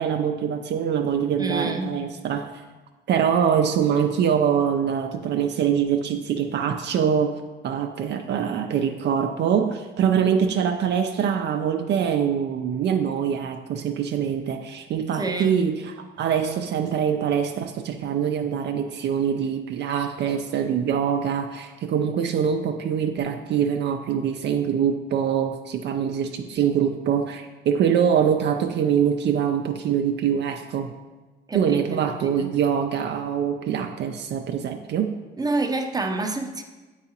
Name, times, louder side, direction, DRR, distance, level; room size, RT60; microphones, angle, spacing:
voice 1, 0.0-2.5 3.1-30.9 31.5-35.1, right 8 dB, 60° right, 5 dB, 0.4 m, -24 dB
voice 2, 1.4-2.0 15.1-15.7 31.5-32.5 35.4-36.6, right 2 dB, 20° right, 4 dB, 0.6 m, -28 dB
7.8 x 4.7 x 2.8 m, 1.2 s
cardioid pair, 90°, 20 cm